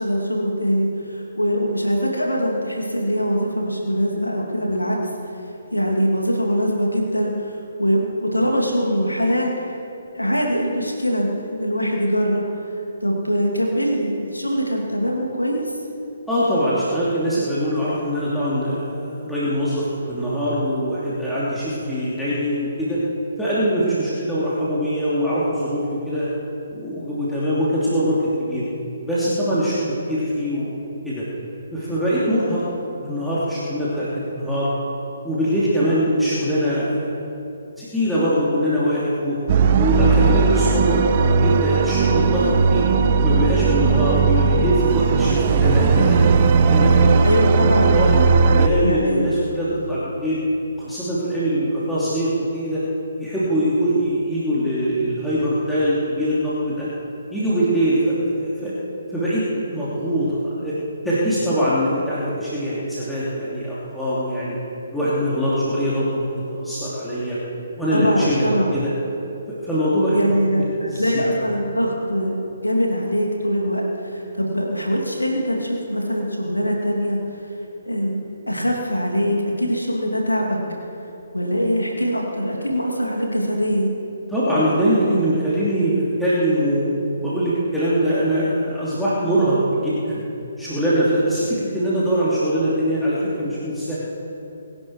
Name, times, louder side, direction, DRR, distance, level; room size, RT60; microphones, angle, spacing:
voice 1, 0.0-5.0 5.7-9.7 10.1-12.4 13.0-15.6 47.2-48.0 48.8-49.3 67.9-68.8 70.1-77.2 77.8-80.6 81.3-83.9, equal, 85° left, 0 dB, 2.7 m, -22 dB
voice 2, 16.3-23.0 23.4-26.3 26.7-28.6 29.0-31.2 31.7-32.6 32.9-34.7 35.2-37.0 37.8-39.4 39.7-41.0 41.3-42.8 43.2-46.2 46.6-47.2 47.9-48.1 48.4-50.4 50.8-52.8 53.2-56.9 57.3-58.7 59.1-59.4 59.7-60.7 61.0-64.6 64.9-66.3 66.6-67.4 67.8-68.9 69.6-70.2 70.8-71.2 84.3-90.2 90.6-94.0, equal, ahead, -11 dB, 2.9 m, -22 dB
sound 1, 39.5-48.7, right 5 dB, 35° right, 0.9 m, -17 dB
24.0 x 10.5 x 4.8 m, 2.8 s
figure-of-eight pair, 135°, 0 cm